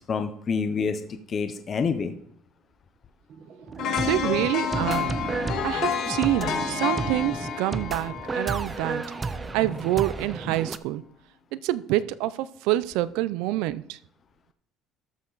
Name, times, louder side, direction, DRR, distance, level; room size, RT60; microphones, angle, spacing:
voice 1, 0.1-2.1, left 5 dB, 25° left, 8 dB, 0.7 m, -27 dB
sound 1, 3.3-8.3, right 5 dB, 45° right, 1.4 m, -38 dB
sound 2, 3.7-10.8, right 4 dB, 15° right, 0.4 m, -33 dB
sound 3, 3.8-9.8 10.2-10.3, left 8 dB, 50° left, 1.6 m, -30 dB
voice 2, 4.1-5.2 5.6-9.0 9.5-11.0 11.5-14.0, right 15 dB, 80° right, 17 dB, 0.5 m, -27 dB
13.0 x 6.5 x 4.0 m, 0.67 s
cardioid pair, 175°, 0 cm